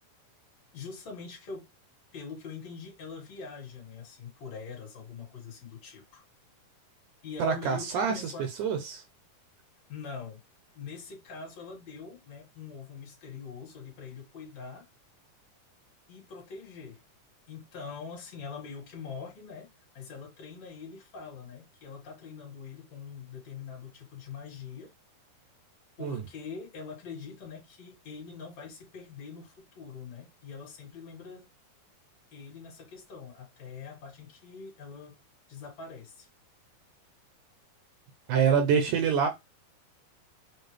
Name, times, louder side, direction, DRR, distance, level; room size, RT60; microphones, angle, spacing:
voice 1, 0.7-1.6 2.1-6.2 7.2-8.5 9.9-10.4 10.7-14.9 16.1-17.0 17.5-19.7 19.9-24.9 26.0-31.5 32.3-35.2 35.5-36.3, left 5 dB, 55° left, 2.6 m, -43 dB
voice 2, 7.4-8.3 8.6-9.0 26.0-26.2 38.3-39.3, right 6 dB, 80° right, 2.0 m, -26 dB
6.6 x 2.4 x 3.1 m
omnidirectional pair, 4.0 m